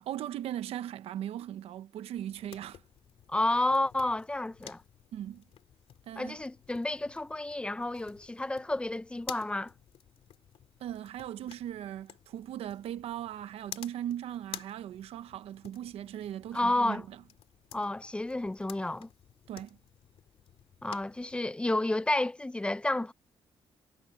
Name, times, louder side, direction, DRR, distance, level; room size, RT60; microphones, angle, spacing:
voice 1, 0.0-2.8 5.1-5.4 6.1-6.4 10.8-17.2 19.5-19.8, right 11 dB, 90° right, 0.8 m, -38 dB
sound 1, 2.1-21.4, left 10 dB, 75° left, 2.7 m, -52 dB
voice 2, 3.3-4.8 6.2-9.7 16.5-17.0 17.7-19.1 20.8-23.1, left 2 dB, 10° left, 0.5 m, -30 dB
cardioid pair, 110°, 10 cm